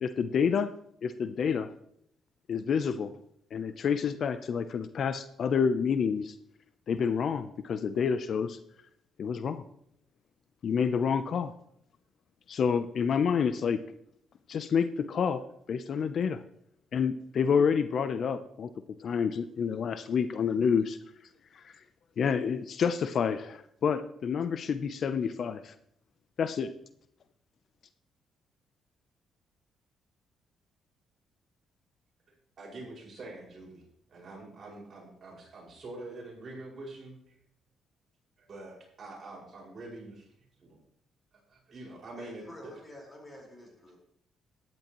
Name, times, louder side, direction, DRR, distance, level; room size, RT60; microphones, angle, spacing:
voice 1, 0.0-0.7 1.0-1.7 2.5-3.1 3.5-6.3 6.9-8.6 9.2-9.6 10.6-11.5 12.5-13.8 14.5-15.4 15.7-16.4 16.9-18.7 19.0-21.0 22.2-25.7 26.4-26.7, left 6 dB, 55° left, 11 dB, 0.6 m, -28 dB
voice 2, 32.6-33.8 34.1-37.3 38.4-40.3 40.6-40.8 41.5-42.7, right 2 dB, 45° right, -3 dB, 5.6 m, -45 dB
voice 3, 42.2-44.0, left 1 dB, 20° left, -1 dB, 4.6 m, -48 dB
13.5 x 10.5 x 3.1 m, 0.70 s
cardioid pair, 90°, 0 cm